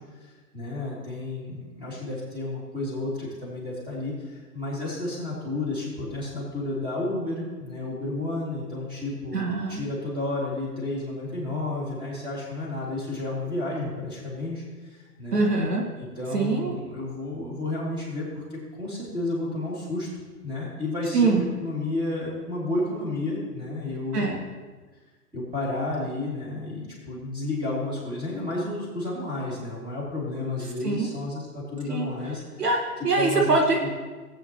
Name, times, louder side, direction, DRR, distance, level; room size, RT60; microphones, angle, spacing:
voice 1, 0.2-9.4 9.7-14.6 14.9-15.4 16.0-20.1 20.4-24.3 25.3-32.4 33.1-33.9, left 2 dB, 10° right, -5 dB, 2.8 m, -31 dB
voice 2, 9.3-9.8 15.3-15.8 16.3-16.7 21.1-21.4 24.1-24.4 30.8-31.1 31.9-32.1 32.6-33.9, right 3 dB, 75° right, 0 dB, 1.9 m, -23 dB
16.0 x 8.7 x 3.1 m, 1.3 s
figure-of-eight pair, 130°, 47 cm